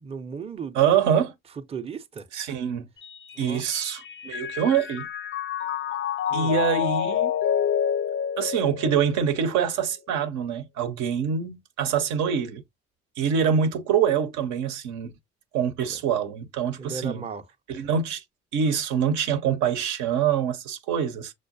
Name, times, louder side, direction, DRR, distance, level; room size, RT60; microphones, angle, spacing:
voice 1, 0.0-0.8 1.7-2.3 3.4-3.6 6.3-6.6 15.8-16.0 16.8-17.4, right 5 dB, 20° right, 0.5 m, -36 dB
voice 2, 0.8-1.3 2.3-2.9 3.4-5.1 6.3-7.3 8.4-12.6 13.2-15.1 15.5-17.2 17.7-18.2 18.5-21.3, right 7 dB, 75° right, 0.7 m, -25 dB
Mallet percussion, 3.0-9.5, left 9 dB, 40° left, 0.4 m, -28 dB
6.2 x 2.1 x 2.5 m
hypercardioid pair, 55°, 30 cm